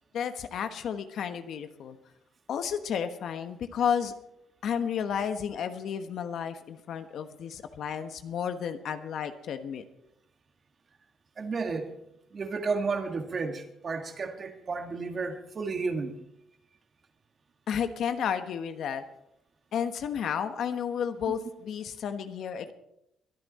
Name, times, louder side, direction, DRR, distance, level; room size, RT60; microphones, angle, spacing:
voice 1, 0.1-2.0 2.5-4.1 4.6-9.8 17.7-19.0 19.7-22.7, left 8 dB, 70° left, 9 dB, 1.2 m, -32 dB
voice 2, 11.4-12.0 12.3-16.2, right 4 dB, 45° right, 5 dB, 2.0 m, -32 dB
22.5 x 9.9 x 4.2 m, 0.82 s
cardioid pair, 90°, 0 cm